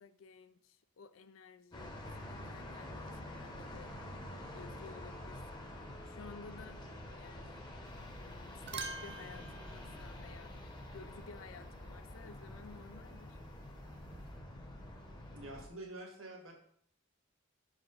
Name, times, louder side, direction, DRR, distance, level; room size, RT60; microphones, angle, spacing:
voice 1, 0.0-4.0 4.5-6.8 7.2-7.6 8.2-10.6 10.9-13.4, left 5 dB, 85° left, 0.5 m, -54 dB
sound 1, 1.7-15.7, left 1 dB, 20° left, 0.9 m, -47 dB
sound 2, 7.9-8.2 8.5-11.0 13.5-14.4, right 4 dB, 60° right, 0.7 m, -47 dB
voice 2, 15.3-16.5, right 2 dB, 80° right, 1.6 m, -47 dB
5.9 x 4.9 x 4.0 m
head